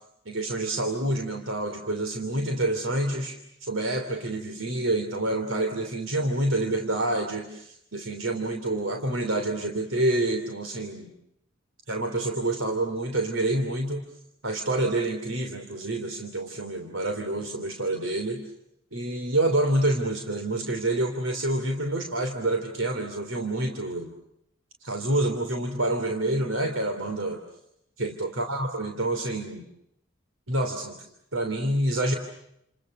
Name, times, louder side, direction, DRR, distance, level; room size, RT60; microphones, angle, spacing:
voice 1, 0.2-11.1 11.9-14.0 14.4-18.4 18.9-24.1 24.8-27.4 28.0-29.7 30.5-31.0 31.3-32.1, right 1 dB, 85° right, 4 dB, 3.1 m, -27 dB
29.5 x 29.0 x 6.6 m, 0.77 s
head